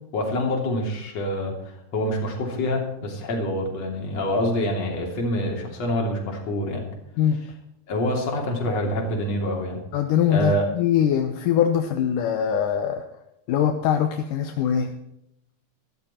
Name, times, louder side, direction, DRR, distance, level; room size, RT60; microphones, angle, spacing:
voice 1, 0.1-6.8 7.9-9.8 10.3-10.7, left 1 dB, 45° left, 1 dB, 3.8 m, -26 dB
voice 2, 9.9-13.0 13.5-14.9, left 9 dB, 75° left, 6 dB, 2.1 m, -22 dB
13.5 x 13.0 x 4.4 m, 0.83 s
omnidirectional pair, 4.4 m